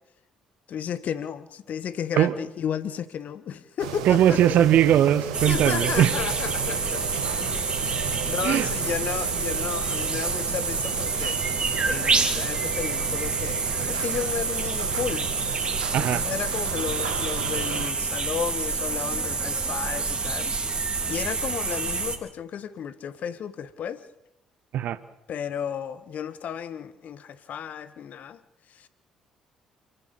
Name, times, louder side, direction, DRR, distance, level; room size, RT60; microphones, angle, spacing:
voice 1, 0.7-4.6 5.4-7.1 7.4-7.7 8.3-11.4 11.8-15.3 15.9-20.5 21.1-24.0 25.3-28.4 28.8-28.9, left 8 dB, 55° left, 1.6 m, -33 dB
sound 1, 3.8-17.9, right 9 dB, 80° right, 1.8 m, -35 dB
voice 2, 4.0-6.2 8.4-8.7 15.9-16.2 24.7-25.0, right 10 dB, 60° right, 1.2 m, -20 dB
sound 2, 5.3-22.2, right 4 dB, 35° right, 3.6 m, -28 dB
28.0 x 12.0 x 8.8 m
hypercardioid pair, 50°, 3 cm